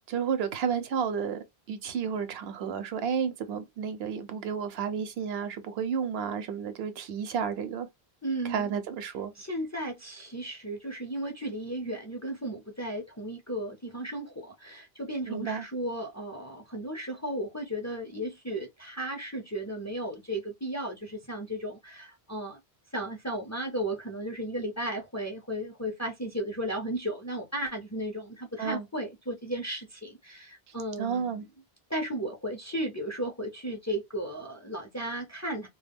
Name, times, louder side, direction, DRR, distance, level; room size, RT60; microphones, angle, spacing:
voice 1, 0.1-7.9 8.4-9.3 15.3-15.6 28.6-28.9 31.0-31.4, right 7 dB, 80° right, 0.8 m, -31 dB
voice 2, 8.2-8.7 9.4-22.6 22.9-31.4 31.9-35.7, right 1 dB, 20° left, 0.4 m, -35 dB
2.2 x 2.2 x 3.3 m
omnidirectional pair, 1.0 m